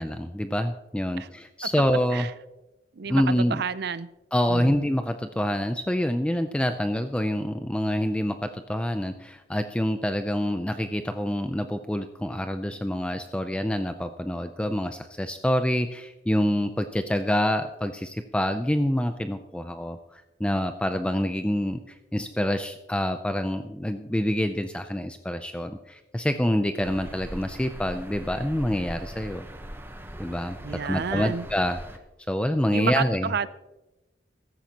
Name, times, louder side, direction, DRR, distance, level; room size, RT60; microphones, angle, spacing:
voice 1, 0.0-2.3 3.1-3.6 4.3-29.5 30.2-31.8 32.3-33.3, equal, 5° left, 8 dB, 0.4 m, -27 dB
voice 2, 2.9-4.1 4.5-4.8 30.6-31.4 32.7-33.5, right 6 dB, 60° right, 16 dB, 0.5 m, -30 dB
sound 1, 26.8-32.0, right 1 dB, 15° right, 0.9 m, -41 dB
15.0 x 13.0 x 2.9 m, 1.0 s
head